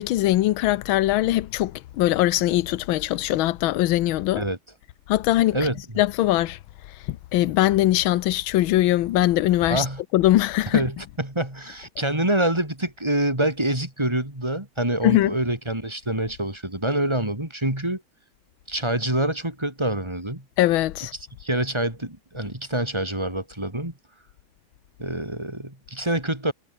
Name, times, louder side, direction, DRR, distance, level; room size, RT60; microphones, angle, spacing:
voice 1, 0.0-4.4 5.1-5.6 6.0-6.6 7.1-9.8 10.1-10.8 15.0-15.3 20.6-21.1, left 15 dB, 80° left, 1.5 m, -21 dB
voice 2, 9.7-10.0 10.7-18.0 18.7-20.4 21.4-23.9 25.0-26.5, right 1 dB, 10° right, 4.5 m, -26 dB
omnidirectional pair, 2.3 m